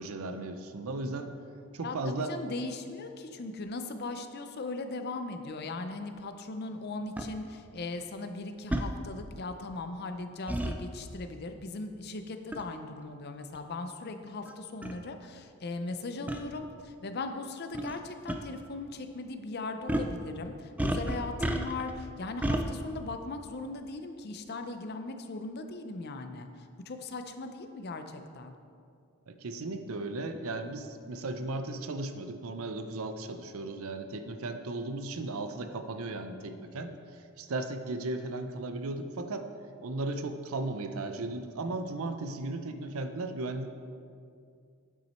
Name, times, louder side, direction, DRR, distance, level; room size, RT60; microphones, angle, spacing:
voice 1, 0.0-1.4 1.7-2.3 29.3-39.5 39.8-43.7, right 2 dB, 70° right, 8 dB, 0.6 m, -36 dB
voice 2, 1.8-28.5, left 3 dB, 45° left, 7 dB, 0.5 m, -39 dB
sound 1, 7.2-7.3 8.7-8.9 10.5-10.7 12.5-12.7 13.5-13.6 14.5-14.6 14.8-15.0 16.3-16.4 17.7-18.0 18.3-18.4 19.9-20.1 20.8-21.9 22.4-22.6, right 1 dB, 5° right, 0.3 m, -30 dB
8.9 x 5.9 x 4.3 m, 2.4 s
head